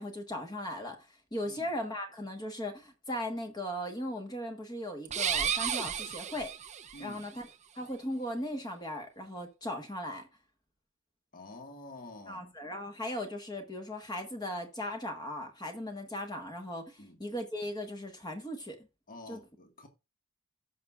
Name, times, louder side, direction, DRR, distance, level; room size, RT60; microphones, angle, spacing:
voice 1, 0.0-6.5 7.0-7.5 7.7-10.3 12.3-18.8 19.3-19.4, left 1 dB, 20° left, 1.4 m, -38 dB
sound 1, 5.0-7.0, right 8 dB, 30° right, 0.6 m, -32 dB
voice 2, 6.9-7.3 11.3-12.5 17.0-17.2 19.1-19.9, left 2 dB, 40° left, 1.7 m, -48 dB
15.5 x 6.0 x 2.4 m
head